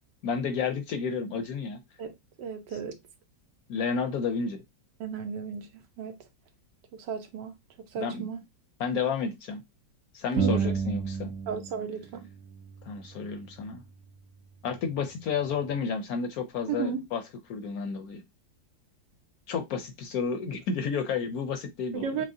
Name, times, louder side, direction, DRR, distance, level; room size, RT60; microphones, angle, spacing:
voice 1, 0.2-1.8 3.7-4.6 8.0-8.3 8.8-9.6 10.1-11.3 12.8-13.8 14.6-17.2 17.5-18.2 19.5-22.2, left 5 dB, 70° left, 1.0 m, -31 dB
voice 2, 2.0-3.0 5.0-6.2 6.9-7.5 7.9-8.4 10.3-10.8 11.5-12.3 16.7-17.0 21.9-22.3, right 6 dB, 80° right, 1.4 m, -34 dB
sound 1, 10.4-11.9 12.1-13.9, right 6 dB, 60° right, 0.9 m, -32 dB
6.0 x 2.0 x 2.6 m
omnidirectional pair, 1.9 m